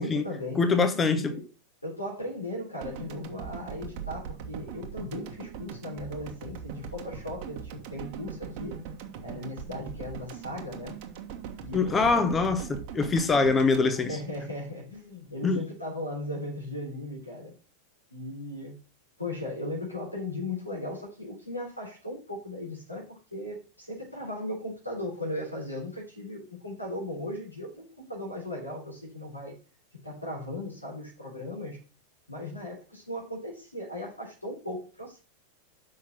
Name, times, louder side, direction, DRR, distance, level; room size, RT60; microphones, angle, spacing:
voice 1, 0.0-1.4 1.8-8.8 9.2-11.0 11.6-12.3 14.0-17.5 18.1-18.8 19.2-29.6 30.0-31.8 32.3-35.2, left 1 dB, 85° left, 3.9 m, -37 dB
voice 2, 0.6-1.4 11.7-14.2 15.4-15.6, left 4 dB, 20° left, 1.0 m, -24 dB
sound 1, 2.8-15.0, right 7 dB, 45° right, 1.4 m, -41 dB
6.4 x 5.9 x 6.0 m
figure-of-eight pair, 90°, 0 cm